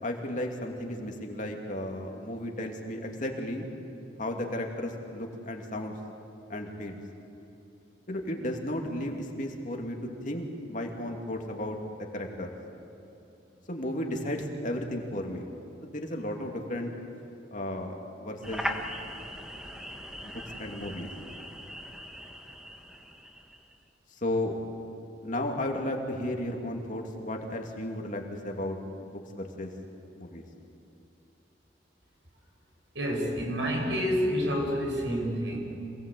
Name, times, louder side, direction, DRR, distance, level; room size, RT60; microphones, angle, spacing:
voice 1, 0.0-3.7 4.2-6.0 6.5-7.0 8.1-10.0 10.2-11.8 12.1-12.5 13.7-15.5 15.8-16.9 17.5-18.6 20.2-21.1 24.2-24.6 25.2-28.8 29.0-29.7 30.2-30.5, left 1 dB, 45° left, 2 dB, 2.7 m, -34 dB
sound 1, 18.4-23.8, equal, 5° right, 1.5 m, -39 dB
voice 2, 32.9-35.6, equal, 80° right, 0 dB, 5.8 m, -28 dB
27.5 x 18.5 x 8.6 m, 2.9 s
head